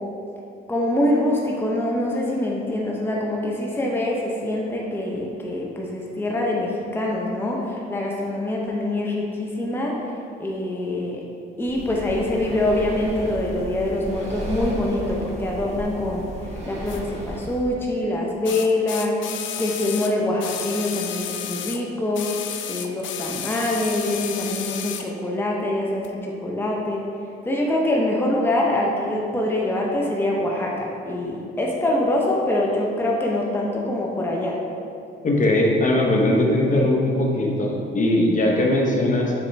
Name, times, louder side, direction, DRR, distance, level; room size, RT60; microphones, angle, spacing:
voice 1, 0.7-10.0 10.4-11.2 11.6-16.3 16.7-22.3 22.7-27.1 27.4-34.6, left 1 dB, 10° left, -2 dB, 0.7 m, -24 dB
Breathing, 11.6-17.7, right 1 dB, 35° right, 1.5 m, -34 dB
sound 1, 16.9-17.0 18.5-21.8 22.1-25.1 26.0-26.1, left 9 dB, 70° left, 0.4 m, -32 dB
voice 2, 35.2-39.3, left 1 dB, 40° left, -1 dB, 0.9 m, -20 dB
6.6 x 4.3 x 3.3 m, 2.5 s
cardioid pair, 90°, 20 cm